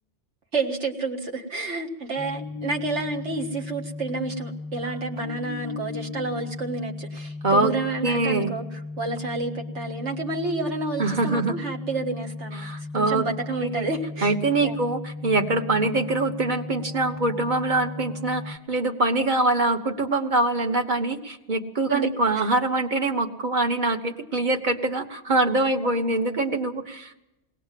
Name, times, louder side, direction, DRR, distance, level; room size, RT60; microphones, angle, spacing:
voice 1, 0.5-14.4 14.6-14.8 21.9-22.1 25.8-25.9, right 3 dB, 75° right, 2 dB, 2.1 m, -30 dB
sound 1, 2.2-18.6, left 3 dB, 15° right, 1.6 m, -36 dB
voice 2, 8.0-8.5 11.0-11.5 12.6-13.2 13.6-13.9 14.2-27.2, right 2 dB, 45° right, 5 dB, 1.3 m, -24 dB
20.5 x 18.0 x 7.5 m, 0.94 s
omnidirectional pair, 1.2 m